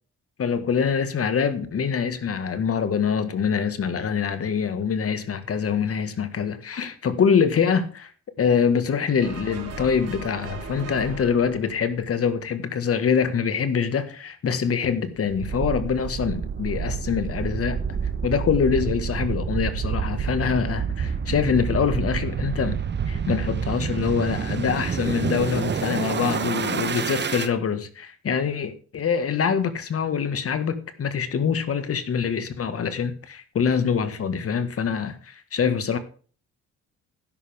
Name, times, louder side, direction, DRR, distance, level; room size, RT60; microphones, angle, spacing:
voice 1, 0.4-8.1 8.4-17.8 18.2-22.8 23.1-36.0, left 6 dB, 50° left, 1.7 m, -24 dB
sound 1, 9.2-12.7, right 3 dB, 55° right, 3.7 m, -39 dB
sound 2, 15.3-27.5, right 6 dB, 35° right, 1.0 m, -28 dB
12.5 x 10.5 x 3.6 m
cardioid pair, 90°, 30 cm